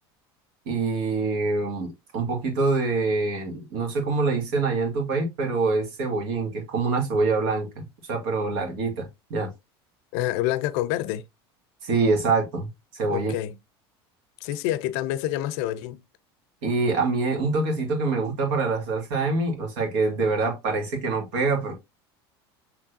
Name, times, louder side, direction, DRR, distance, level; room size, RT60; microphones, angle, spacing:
voice 1, 0.7-7.8 8.1-9.5 11.8-13.3 16.6-21.7, right 3 dB, 70° right, 1.9 m, -25 dB
voice 2, 10.1-11.2 13.1-13.6 14.4-16.0, left 14 dB, 65° left, 0.5 m, -27 dB
6.1 x 3.2 x 2.6 m
hypercardioid pair, 85°, 14 cm